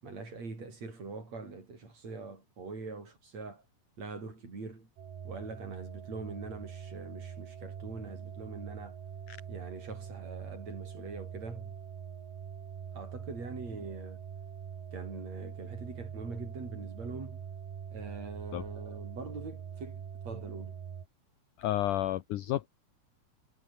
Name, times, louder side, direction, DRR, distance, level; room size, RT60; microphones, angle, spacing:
voice 1, 0.0-3.6 4.0-4.9 5.2-9.0 9.5-11.7 12.9-14.2 14.9-17.5 17.9-20.8, right 3 dB, 40° right, 8.9 m, -43 dB
sound 1, 5.0-21.1, right 7 dB, 65° right, 5.1 m, -44 dB
voice 2, 21.6-22.7, left 13 dB, 75° left, 1.9 m, -31 dB
omnidirectional pair, 4.9 m